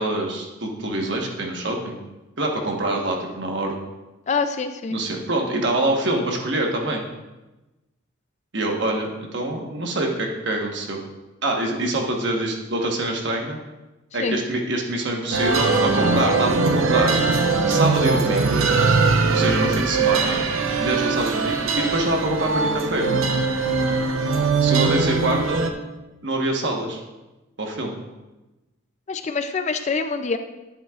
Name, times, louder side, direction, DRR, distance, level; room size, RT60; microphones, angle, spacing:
voice 1, 0.0-2.0 2.4-3.8 4.9-7.1 8.5-11.0 11.4-13.6 14.1-17.2 17.7-18.7 19.3-20.4 20.8-23.1 24.6-25.7 26.2-27.0 27.6-27.9, right 1 dB, 55° right, 1 dB, 1.2 m, -25 dB
voice 2, 4.3-5.0 14.2-14.4 29.1-30.4, left 4 dB, 35° left, 8 dB, 0.4 m, -25 dB
sound 1, 15.3-25.7, right 4 dB, 80° right, 0.7 m, -21 dB
10.5 x 8.7 x 2.4 m, 1.1 s
head